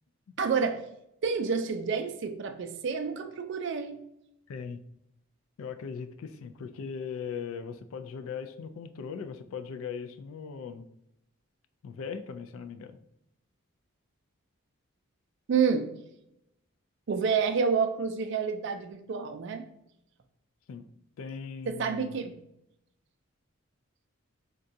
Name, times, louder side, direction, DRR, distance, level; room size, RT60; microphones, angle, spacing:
voice 1, 0.4-0.8 1.2-4.0 15.5-15.9 17.1-19.6 21.7-22.4, right 5 dB, 55° right, 7 dB, 0.3 m, -28 dB
voice 2, 4.5-4.8 5.6-10.8 11.8-13.0 20.7-20.8 21.2-22.3, left 6 dB, 75° left, 10 dB, 0.3 m, -39 dB
3.8 x 2.2 x 2.6 m, 0.79 s
head